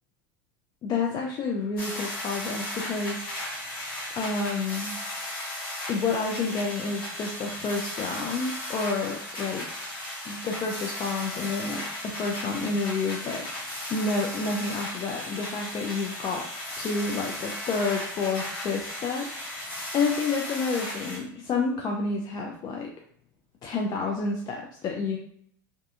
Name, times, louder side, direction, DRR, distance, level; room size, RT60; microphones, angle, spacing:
voice 1, 0.8-3.8 4.2-4.9 5.9-9.7 10.3-16.4 16.8-22.9 23.6-25.2, left 4 dB, 35° left, 0 dB, 0.4 m, -30 dB
sound 1, 1.8-21.2, left 1 dB, 85° left, 1.2 m, -36 dB
2.6 x 2.3 x 2.4 m, 0.65 s
hypercardioid pair, 90°, 12 cm